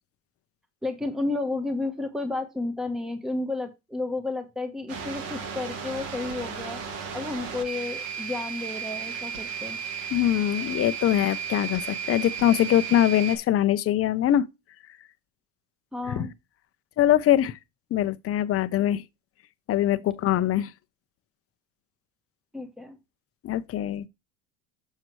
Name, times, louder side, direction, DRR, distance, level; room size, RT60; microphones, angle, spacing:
voice 1, 0.8-6.8 7.1-9.8 15.9-16.3 22.5-23.0, left 2 dB, ahead, 1.0 m, -32 dB
sound 1, 4.9-13.4, right 6 dB, 80° right, 2.0 m, -34 dB
voice 2, 10.1-14.5 16.2-16.3 17.0-17.6 17.9-19.0 19.7-20.7 23.4-24.1, left 12 dB, 40° left, 0.6 m, -23 dB
7.4 x 6.6 x 3.1 m
supercardioid pair, 100°, 38 cm